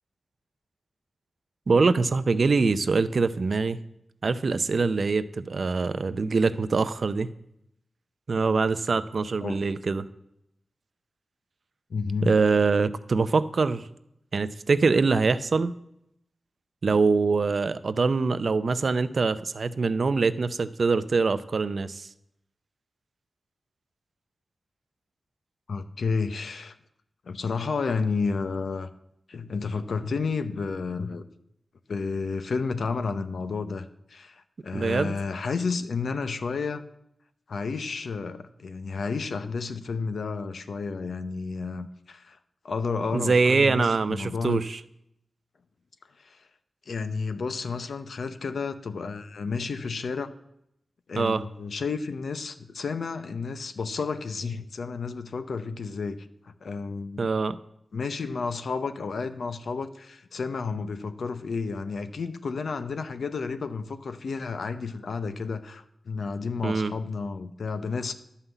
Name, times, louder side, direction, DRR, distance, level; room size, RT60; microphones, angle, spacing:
voice 1, 1.7-3.8 4.2-7.3 8.3-10.1 12.2-13.9 14.3-15.7 16.8-22.1 34.7-35.1 43.1-44.8 51.1-51.4 57.2-57.6 66.6-66.9, right 4 dB, 60° right, 13 dB, 0.5 m, -24 dB
voice 2, 11.9-12.4 25.7-26.7 27.3-28.9 29.3-31.2 31.9-36.8 37.5-42.4 42.6-44.6 46.2-46.4 46.9-50.3 51.1-56.2 56.4-57.3 57.9-68.1, left 4 dB, 80° left, 10 dB, 0.7 m, -31 dB
11.0 x 5.7 x 8.0 m, 0.79 s
wide cardioid pair, 80°, 0 cm